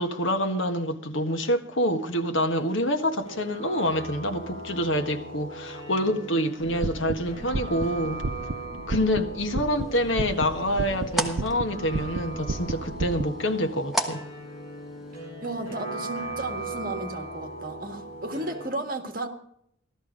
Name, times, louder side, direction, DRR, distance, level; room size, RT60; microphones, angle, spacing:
voice 1, 0.0-8.2 8.9-14.2, equal, 70° left, 1.5 m, -27 dB
sound 1, 2.5-18.7, right 2 dB, 30° left, 4.5 m, -39 dB
sound 2, 6.6-13.2, right 2 dB, 65° right, 0.7 m, -33 dB
sound 3, 9.7-15.1, right 1 dB, ahead, 1.2 m, -36 dB
voice 2, 15.4-19.3, right 2 dB, 45° right, 1.7 m, -34 dB
16.5 x 13.0 x 5.1 m
head